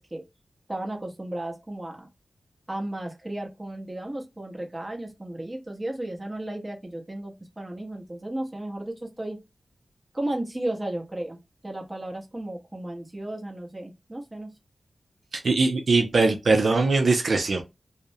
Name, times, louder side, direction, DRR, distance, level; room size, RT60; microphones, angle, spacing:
voice 1, 0.7-2.1 2.7-9.4 10.1-11.4 11.6-14.5, right 1 dB, 20° right, 0.8 m, -34 dB
voice 2, 15.4-17.6, right 3 dB, 70° right, 0.4 m, -21 dB
2.5 x 2.0 x 2.6 m
wide cardioid pair, 95°, 0 cm